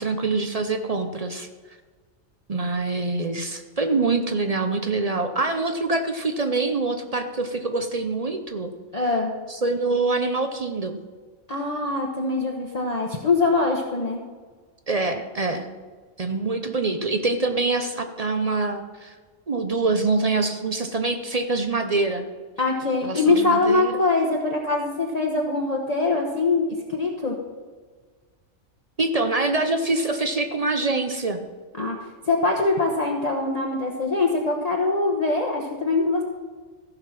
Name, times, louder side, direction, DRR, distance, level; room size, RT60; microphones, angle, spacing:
voice 1, 0.0-1.5 2.5-8.7 9.5-11.0 14.9-15.7 16.2-19.2 19.5-22.3 23.0-24.0 29.0-31.4, right 3 dB, 40° right, 7 dB, 0.6 m, -25 dB
voice 2, 8.9-9.3 11.5-14.2 22.6-27.4 31.8-32.0 32.3-36.2, left 3 dB, 35° left, -1 dB, 1.0 m, -23 dB
15.0 x 5.5 x 5.9 m, 1.5 s
omnidirectional pair, 1.4 m